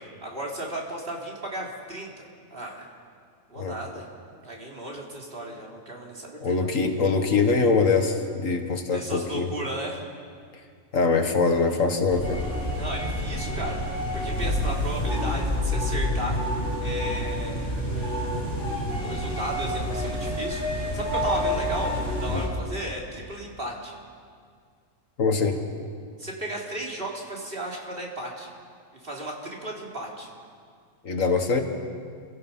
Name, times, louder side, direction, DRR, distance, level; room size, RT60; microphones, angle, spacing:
voice 1, 0.2-2.2 2.5-2.9 3.5-4.1 4.4-6.7 8.9-10.0 12.8-13.8 14.1-16.4 16.8-18.5 19.0-23.9 26.2-28.5 29.0-30.3, right 1 dB, 45° right, -2 dB, 3.5 m, -35 dB
voice 2, 6.4-9.5 10.9-12.4 22.3-22.5 25.2-25.6 31.0-31.6, left 4 dB, 75° left, 5 dB, 2.0 m, -23 dB
sound 1, 12.1-22.5, left 1 dB, 35° left, 6.0 m, -28 dB
28.5 x 16.5 x 5.6 m, 2.1 s
omnidirectional pair, 1.4 m